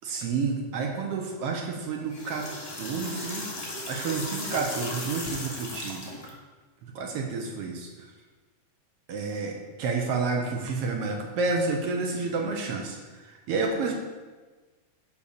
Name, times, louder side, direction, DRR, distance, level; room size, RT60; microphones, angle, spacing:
voice 1, 0.0-2.5 2.8-3.5 3.8-6.1 6.8-8.1 9.1-13.9, right 4 dB, 70° right, 2 dB, 1.5 m, -30 dB
sound 1, 2.0-6.3, left 2 dB, 45° left, 0.8 m, -36 dB
6.8 x 5.1 x 6.7 m, 1.3 s
omnidirectional pair, 3.5 m